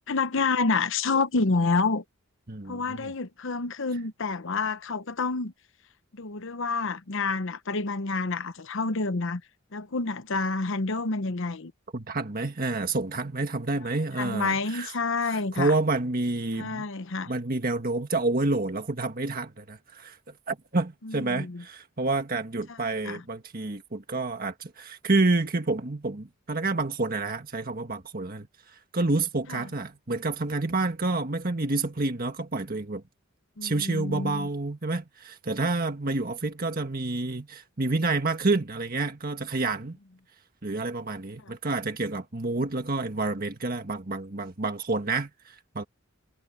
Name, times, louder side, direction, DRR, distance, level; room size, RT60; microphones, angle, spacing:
voice 1, 0.1-2.0 2.7-5.5 6.1-9.4 9.7-11.7 14.2-15.7 16.6-17.3 21.0-21.6 22.7-23.2 29.5-29.6 33.6-34.5 41.4-41.6, left 3 dB, 60° left, 0.9 m, -28 dB
voice 2, 2.5-3.1 11.9-14.9 15.2-16.8 17.3-20.2 20.5-33.0 33.6-40.0 40.6-45.8, right 3 dB, 45° right, 1.6 m, -29 dB
head